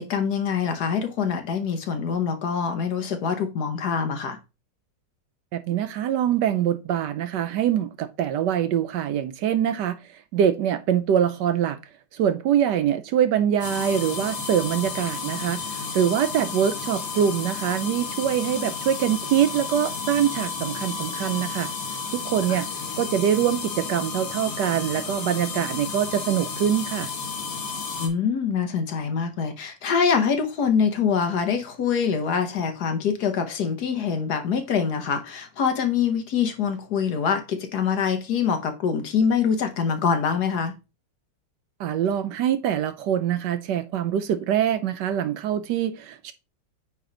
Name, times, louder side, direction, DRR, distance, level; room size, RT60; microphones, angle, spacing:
voice 1, 0.0-4.4 22.5-22.6 28.0-40.7, left 6 dB, 60° left, 1.4 m, -24 dB
voice 2, 5.5-10.0 10.3-11.8 12.1-21.7 22.1-22.7 23.0-27.1 41.8-46.3, right 9 dB, 70° right, 1.2 m, -24 dB
sound 1, 13.6-28.1, left 5 dB, 85° left, 2.3 m, -32 dB
9.1 x 3.3 x 3.8 m
omnidirectional pair, 2.0 m